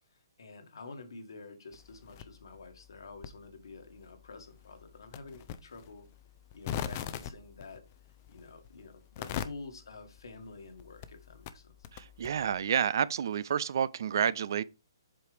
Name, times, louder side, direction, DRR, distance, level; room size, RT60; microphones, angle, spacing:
voice 1, 0.4-6.1 6.5-7.9 8.3-11.7, left 3 dB, 80° left, 1.8 m, -48 dB
sound 1, 1.7-12.6, left 10 dB, 30° left, 0.5 m, -44 dB
voice 2, 11.9-14.6, right 8 dB, 60° right, 0.4 m, -29 dB
7.7 x 4.8 x 3.4 m
hypercardioid pair, 155°, 2 cm